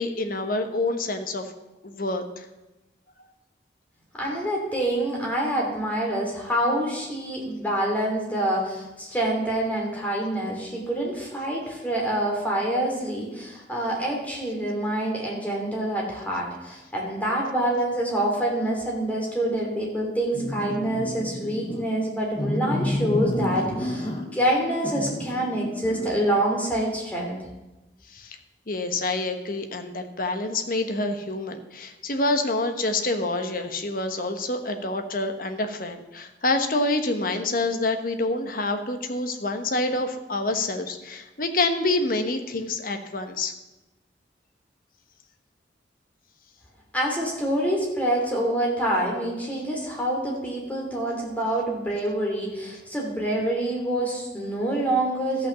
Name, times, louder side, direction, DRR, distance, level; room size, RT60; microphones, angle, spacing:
voice 1, 0.0-1.5 1.8-2.5 28.1-28.4 28.7-43.5, left 2 dB, 50° left, 6 dB, 1.1 m, -27 dB
voice 2, 4.1-27.4 46.9-55.5, right 1 dB, 10° left, -2 dB, 2.9 m, -26 dB
sound 1, 20.3-21.8 22.3-24.4 24.8-26.2, left 1 dB, 25° left, 1.3 m, -30 dB
13.5 x 5.9 x 6.9 m, 1.0 s
head